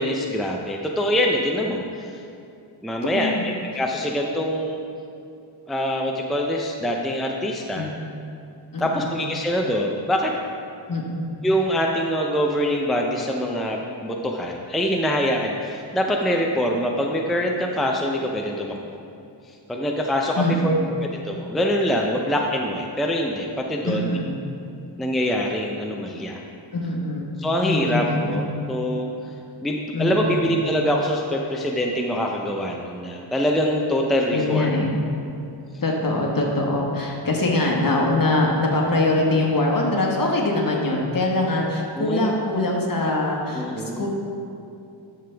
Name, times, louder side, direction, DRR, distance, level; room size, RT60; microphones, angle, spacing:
voice 1, 0.0-1.8 2.1-2.2 2.8-4.8 5.7-7.9 8.8-10.3 11.4-18.8 19.7-24.1 25.0-26.4 27.4-29.1 29.6-34.7 42.0-42.3 43.6-44.0, equal, ahead, 0 dB, 0.6 m, -24 dB
voice 2, 3.1-3.4 7.7-7.9 8.7-9.1 10.9-11.2 20.4-20.9 23.8-24.3 26.7-28.4 29.9-30.5 34.3-34.9 35.8-44.1, left 2 dB, 45° left, -1 dB, 1.5 m, -23 dB
11.0 x 6.9 x 3.4 m, 2.7 s
wide cardioid pair, 95°, 47 cm